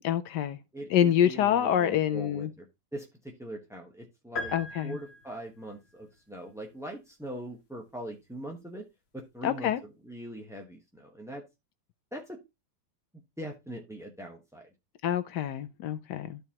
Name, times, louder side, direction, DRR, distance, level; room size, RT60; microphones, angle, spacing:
voice 1, 0.0-0.6 0.9-2.5 4.5-5.0 9.4-9.8 15.0-16.4, left 10 dB, 70° left, 1.1 m, -26 dB
voice 2, 0.7-2.7 2.9-4.5 4.8-8.9 9.1-11.4 12.1-12.4 13.4-14.7, right 1 dB, 5° right, 0.4 m, -41 dB
sound 1, 4.4-5.7, left 2 dB, 40° left, 1.2 m, -38 dB
13.0 x 4.6 x 2.8 m
omnidirectional pair, 2.1 m